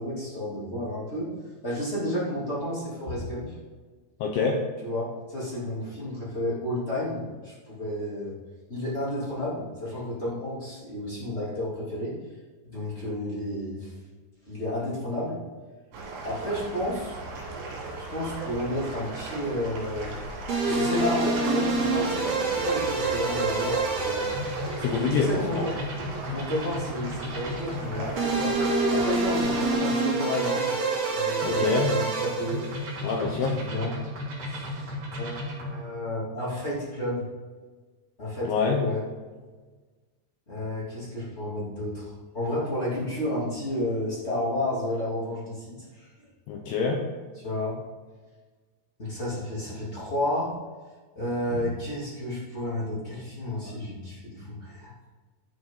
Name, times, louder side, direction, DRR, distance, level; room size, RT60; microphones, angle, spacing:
voice 1, 0.0-1.3 1.6-3.5 4.8-8.3 8.7-12.2 12.6-13.9 14.5-15.4 16.2-17.2 18.1-20.1 20.6-24.3 24.9-25.7 26.3-28.6 28.9-30.7 31.1-32.7 33.1-33.9 34.4-37.3 38.2-39.0 40.5-46.3 47.4-47.8 49.0-50.5 51.1-54.9, left 1 dB, 20° left, -8 dB, 1.8 m, -31 dB
voice 2, 4.2-4.6 24.8-25.7 31.4-32.0 33.0-33.7 38.5-38.9 46.5-47.1, left 5 dB, 80° left, 1 dB, 2.3 m, -26 dB
sound 1, 15.9-29.7, right 2 dB, 65° right, 4.5 m, -38 dB
sound 2, 20.5-35.8, right 2 dB, 40° right, 2.7 m, -28 dB
12.0 x 7.3 x 3.8 m, 1.4 s
omnidirectional pair, 5.8 m